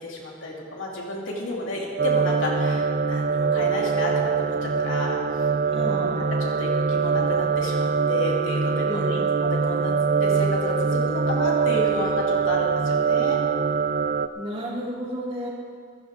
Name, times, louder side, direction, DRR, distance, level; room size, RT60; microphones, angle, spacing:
voice 1, 0.0-5.2 5.6-6.0 6.4-13.4, left 1 dB, 75° left, -3 dB, 2.9 m, -31 dB
sound 1, 2.0-14.3, right 5 dB, 45° right, 0.5 m, -23 dB
voice 2, 5.7-6.3 8.8-9.3 14.3-15.5, equal, 30° right, -4 dB, 2.8 m, -32 dB
15.0 x 15.0 x 3.8 m, 2.2 s
head